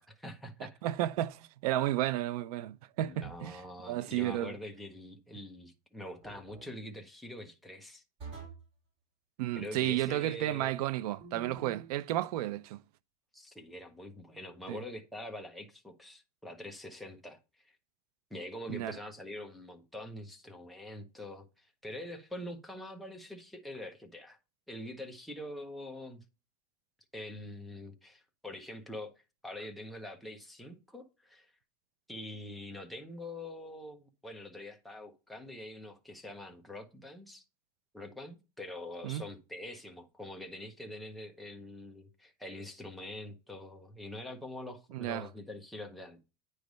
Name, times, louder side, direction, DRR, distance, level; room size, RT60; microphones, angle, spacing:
voice 1, 0.0-0.8 3.0-8.0 9.5-10.8 13.3-17.8 18.3-24.4 24.7-26.2 27.1-29.1 29.4-31.5 32.1-37.4 37.9-46.2, left 1 dB, ahead, 0.8 m, -45 dB
voice 2, 0.6-3.6 3.9-4.5 9.4-12.8 14.7-14.8 18.7-19.0 39.0-39.2 44.9-45.3, right 14 dB, 85° right, 0.6 m, -32 dB
sound 1, 3.2-3.7 6.2-6.7 8.2-8.7 11.2-11.9, right 4 dB, 30° right, 2.8 m, -48 dB
9.2 x 3.3 x 5.2 m
supercardioid pair, 170°, 19 cm